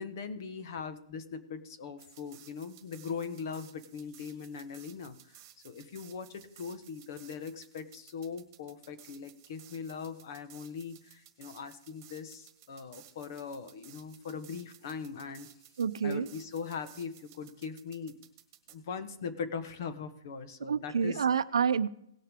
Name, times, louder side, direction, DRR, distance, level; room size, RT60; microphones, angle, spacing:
voice 1, 0.0-15.5 16.0-18.2 18.7-21.3, left 6 dB, 45° left, 10 dB, 1.3 m, -41 dB
sound 1, 2.0-18.7, right 12 dB, 30° right, 1.7 m, -57 dB
voice 2, 15.8-16.3 20.7-21.9, right 6 dB, 80° right, 14 dB, 0.6 m, -28 dB
18.5 x 6.6 x 3.7 m, 0.76 s
hypercardioid pair, 165°, 3 cm